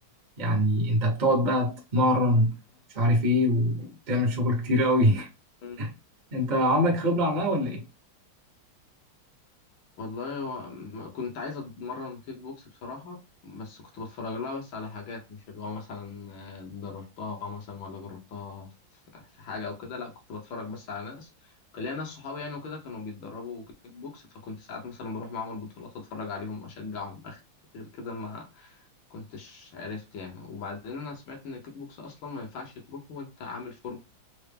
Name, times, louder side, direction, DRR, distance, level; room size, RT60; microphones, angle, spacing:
voice 1, 0.4-2.5 2.9-5.3 5.8-5.9 6.3-7.8, equal, 45° right, 0.5 m, -23 dB
voice 2, 10.0-13.2 13.4-18.7 19.1-27.4 27.7-28.9 29.1-34.0, left 4 dB, 70° left, 1.7 m, -38 dB
4.4 x 2.0 x 3.3 m
omnidirectional pair, 2.3 m